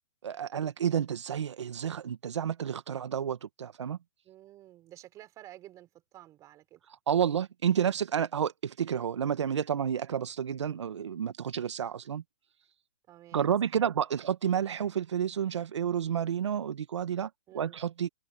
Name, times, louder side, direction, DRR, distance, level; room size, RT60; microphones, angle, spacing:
voice 1, 0.2-4.0 7.1-12.2 13.3-18.1, right 8 dB, 80° right, 1.7 m, -30 dB
voice 2, 4.2-6.8 13.1-13.9 17.5-17.8, right 14 dB, 20° right, 6.4 m, -52 dB
hypercardioid pair, 155°, 15 cm